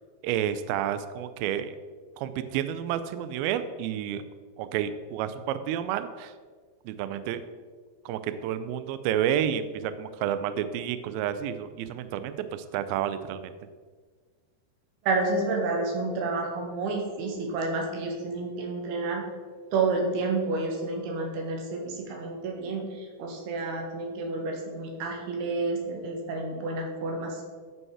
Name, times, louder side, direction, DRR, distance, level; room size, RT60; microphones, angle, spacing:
voice 1, 0.2-1.7 2.2-4.3 4.6-6.3 6.9-7.4 8.1-13.5, right 10 dB, 90° right, 11 dB, 2.1 m, -30 dB
voice 2, 15.0-19.2 19.7-27.4, right 3 dB, 70° right, 1 dB, 3.3 m, -30 dB
11.0 x 5.4 x 4.8 m, 1.5 s
omnidirectional pair, 4.9 m